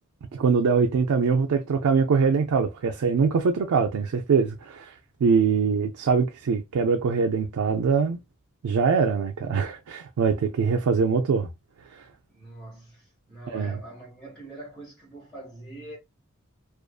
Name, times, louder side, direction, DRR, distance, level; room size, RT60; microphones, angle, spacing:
voice 1, 0.3-4.9 5.2-8.2 8.6-11.5 13.5-13.8, right 5 dB, 90° right, 0.4 m, -23 dB
voice 2, 12.3-16.0, right 1 dB, 5° left, 1.2 m, -43 dB
2.5 x 2.4 x 2.2 m
head